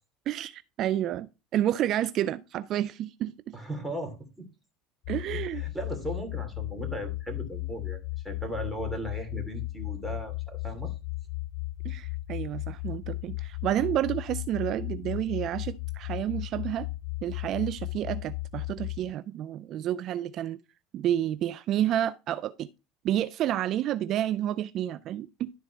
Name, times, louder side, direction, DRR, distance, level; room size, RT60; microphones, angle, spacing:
voice 1, 0.3-3.6 5.1-5.6 11.8-16.9 17.2-20.6 20.9-22.7 23.0-25.5, right 12 dB, 55° right, 0.4 m, -30 dB
voice 2, 3.5-4.5 5.3-10.9, right 1 dB, 5° right, 2.8 m, -37 dB
sound 1, 5.0-19.1, left 20 dB, 55° left, 1.5 m, -35 dB
11.5 x 4.2 x 4.5 m
hypercardioid pair, 80°, 0 cm